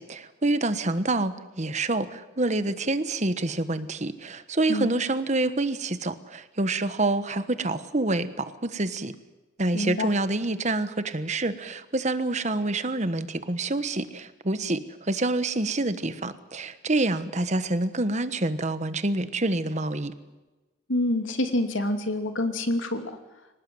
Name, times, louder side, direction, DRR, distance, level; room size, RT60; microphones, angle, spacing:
voice 1, 0.0-9.1 9.6-20.1, right 2 dB, 35° right, 12 dB, 1.2 m, -27 dB
voice 2, 9.7-10.1 20.9-23.2, left 1 dB, 80° left, 6 dB, 2.7 m, -27 dB
24.5 x 19.0 x 7.9 m, 1.1 s
head